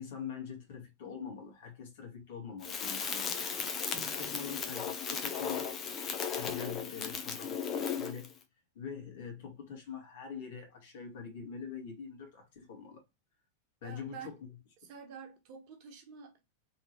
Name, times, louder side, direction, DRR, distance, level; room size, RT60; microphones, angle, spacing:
voice 1, 0.0-5.7 6.3-8.3 8.8-13.0 13.8-14.5, left 6 dB, 55° left, 1.9 m, -44 dB
Crackle, 2.6-8.3, left 6 dB, 25° left, 0.7 m, -36 dB
voice 2, 3.9-4.4 13.8-14.3 14.8-16.4, right 6 dB, 45° right, 1.2 m, -49 dB
3.5 x 3.3 x 3.1 m
figure-of-eight pair, 90°, 0 cm